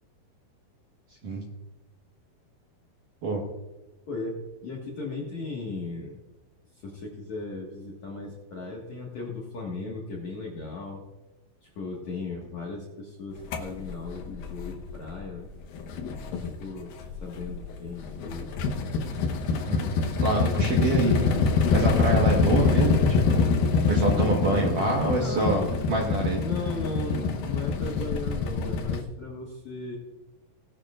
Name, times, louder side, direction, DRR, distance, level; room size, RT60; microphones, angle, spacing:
voice 1, 4.1-6.2 6.7-11.0 11.6-15.5 16.4-16.9 17.2-18.6 25.2-25.7 26.3-29.9, left 3 dB, 55° left, -3 dB, 2.1 m, -36 dB
sound 1, 13.5-15.5 15.7-29.0, left 4 dB, 85° left, 2.0 m, -26 dB
voice 2, 20.2-21.4 21.7-23.4 23.9-25.6 25.9-26.4, right 2 dB, 60° right, -1 dB, 2.2 m, -26 dB
19.0 x 11.5 x 2.5 m, 1.1 s
omnidirectional pair, 5.5 m